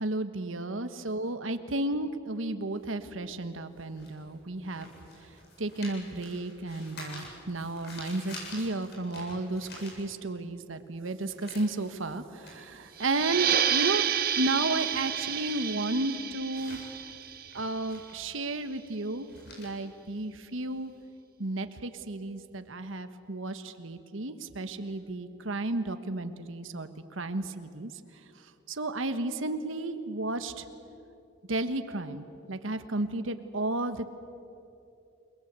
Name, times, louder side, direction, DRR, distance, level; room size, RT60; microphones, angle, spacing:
voice 1, 0.0-4.9 5.6-14.0 14.4-16.8 17.5-19.3 19.6-20.9 21.4-27.9 28.7-30.6 31.5-34.1, right 2 dB, 90° right, 9 dB, 1.4 m, -33 dB
sound 1, 2.8-10.5 10.8-20.9, left 2 dB, 55° left, 7.8 m, -49 dB
sound 2, 13.0-18.2, right 9 dB, 50° right, 1.2 m, -30 dB
29.0 x 20.5 x 8.2 m, 2.7 s
head